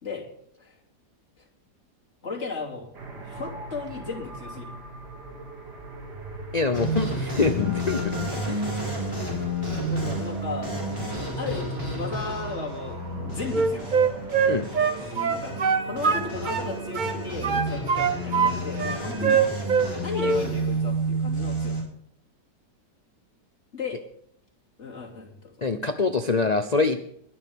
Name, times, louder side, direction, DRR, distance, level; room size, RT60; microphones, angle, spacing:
voice 1, 2.2-2.9 3.2-4.8 8.1-8.3 9.9-10.9 11.4-14.1 15.2-19.5 20.0-21.8 23.7-24.0 24.8-25.7, left 4 dB, 40° left, -2 dB, 3.2 m, -35 dB
sound 1, 2.9-19.5, right 3 dB, 70° right, 2.7 m, -41 dB
voice 2, 6.5-8.1 8.5-8.6 14.4-14.7 25.6-27.0, left 4 dB, 60° left, 8 dB, 0.4 m, -25 dB
sound 2, 6.7-21.8, right 1 dB, 15° right, 5.0 m, -31 dB
Wind instrument woodwind instrument, 13.5-16.7 16.9-18.5 18.8-19.9 20.1-20.4, right 6 dB, 45° right, 0.6 m, -23 dB
21.5 x 9.9 x 3.6 m, 0.67 s
omnidirectional pair, 1.9 m